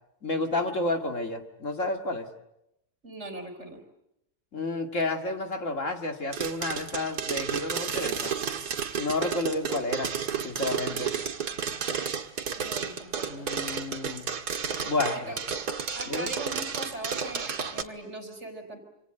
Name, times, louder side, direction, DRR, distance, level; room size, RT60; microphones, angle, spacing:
voice 1, 0.2-2.3 4.5-8.3 8.9-10.2 10.4-11.1 13.3-14.3 14.8-15.4 16.1-16.3, left 2 dB, 50° left, 5 dB, 2.5 m, -30 dB
voice 2, 3.0-3.8 12.5-13.5 15.1-15.4 15.9-18.8, right 2 dB, 45° right, 6 dB, 4.3 m, -40 dB
sound 1, 6.3-17.8, right 7 dB, 85° right, 2.2 m, -32 dB
27.5 x 26.5 x 7.8 m, 0.83 s
omnidirectional pair, 1.7 m